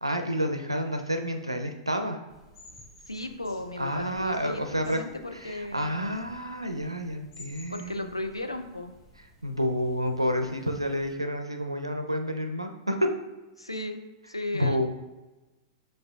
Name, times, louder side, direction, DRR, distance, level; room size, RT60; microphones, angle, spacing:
voice 1, 0.0-2.2 3.8-5.0 5.3-8.1 9.4-13.1 14.5-14.9, equal, 90° right, 5 dB, 0.4 m, -29 dB
sound 1, 2.3-11.1, equal, 50° left, 1.1 m, -54 dB
voice 2, 3.1-6.0 7.7-8.9 13.6-14.0 14.3-14.9, left 1 dB, 85° left, 6 dB, 0.4 m, -35 dB
6.7 x 2.5 x 2.3 m, 1.1 s
figure-of-eight pair, 100°, 3 cm